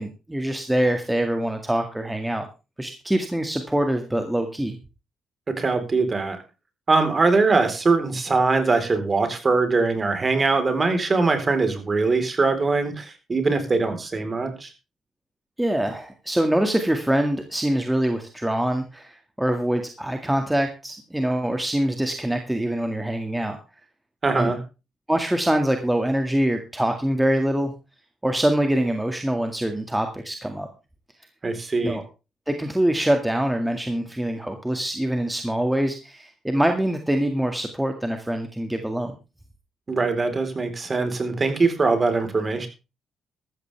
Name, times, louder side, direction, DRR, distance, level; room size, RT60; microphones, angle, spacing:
voice 1, 0.0-2.5 2.8-4.8 15.6-23.6 24.3-24.5 25.1-27.7 28.2-30.7 31.8-32.0 32.5-39.2, right 1 dB, 5° right, 5 dB, 2.0 m, -24 dB
voice 2, 5.5-6.4 6.9-14.7 24.2-24.6 31.4-32.0 39.9-42.7, right 3 dB, 30° right, 8 dB, 4.0 m, -22 dB
14.0 x 13.5 x 3.4 m, 0.29 s
cardioid pair, 90°, 0 cm